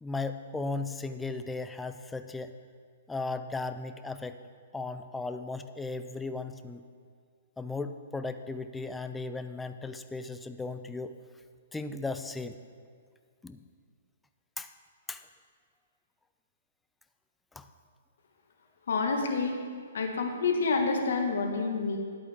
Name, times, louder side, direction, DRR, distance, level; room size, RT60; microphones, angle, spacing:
voice 1, 0.0-2.5 3.1-4.4 4.7-6.9 7.6-11.1 11.7-12.6 13.4-13.6 14.6-14.7 15.1-15.2 17.6-17.7, left 3 dB, 5° left, 8 dB, 0.3 m, -36 dB
voice 2, 18.9-19.5 19.9-22.0, left 4 dB, 75° left, 2 dB, 1.5 m, -28 dB
11.0 x 8.5 x 3.5 m, 2.1 s
hypercardioid pair, 165°, 0 cm